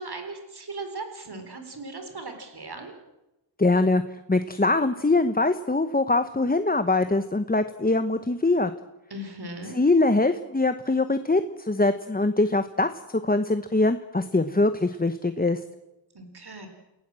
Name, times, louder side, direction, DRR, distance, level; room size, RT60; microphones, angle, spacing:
voice 1, 0.0-2.9 9.1-9.8 16.1-16.7, right 2 dB, 55° right, 6 dB, 4.2 m, -38 dB
voice 2, 3.6-4.0 4.3-8.7 9.7-12.9 13.2-15.6, left 2 dB, 20° left, 10 dB, 1.0 m, -23 dB
29.0 x 17.5 x 7.7 m, 0.95 s
wide cardioid pair, 85°, 46 cm